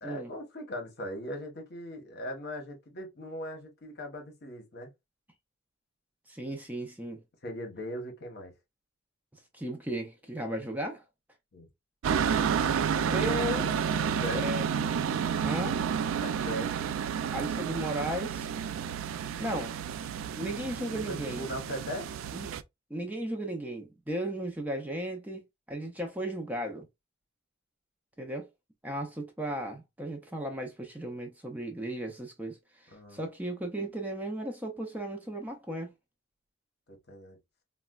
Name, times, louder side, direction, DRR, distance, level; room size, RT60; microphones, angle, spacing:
voice 1, 0.0-4.9 7.4-8.5 11.5-11.7 14.0-14.4 16.2-16.9 20.9-22.1 32.9-33.2 36.9-37.4, equal, 55° left, 1.0 m, -39 dB
voice 2, 6.3-7.2 9.5-11.0 12.9-14.0 14.3-14.6 15.4-15.8 17.3-18.5 19.4-19.7 20.3-21.5 22.3-22.5 22.9-26.9 28.2-28.5 28.8-35.9, right 1 dB, 10° right, 0.5 m, -35 dB
sound 1, 12.0-22.6, right 7 dB, 85° right, 0.3 m, -30 dB
4.0 x 2.1 x 2.3 m
head